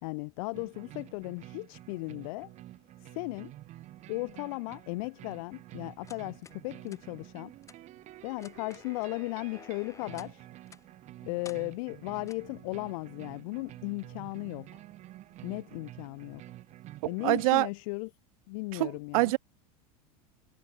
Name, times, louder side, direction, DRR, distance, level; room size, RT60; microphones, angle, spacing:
voice 1, 0.0-2.5 3.0-3.5 4.1-7.5 8.2-10.5 11.2-14.8 15.4-16.4 17.1-18.1 18.5-19.3, left 27 dB, 65° left, 2.5 m, -36 dB
sound 1, 0.5-17.5, right 15 dB, 40° right, 3.0 m, -49 dB
sound 2, 6.1-6.6 6.9-7.0 7.6-7.8 8.3-10.4 10.7-10.9 11.4-11.6 12.3-12.5, left 5 dB, 15° left, 2.2 m, -52 dB
voice 2, 17.2-17.7 18.7-19.4, right 23 dB, 70° right, 0.6 m, -25 dB
supercardioid pair, 150°, 19 cm